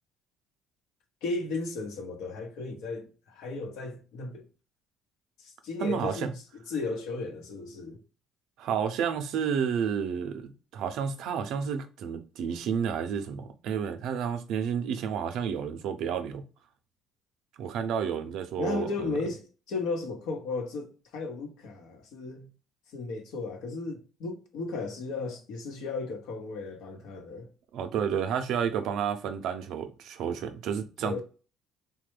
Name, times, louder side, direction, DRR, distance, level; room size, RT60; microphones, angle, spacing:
voice 1, 1.2-4.5 5.4-8.0 18.6-22.5 22.9-27.5 31.0-31.2, left 3 dB, 80° left, 0.8 m, -35 dB
voice 2, 5.8-6.3 8.6-16.4 17.6-19.1 27.7-31.2, right 7 dB, 70° right, 0.5 m, -31 dB
3.1 x 2.2 x 3.2 m
cardioid pair, 105°, 0 cm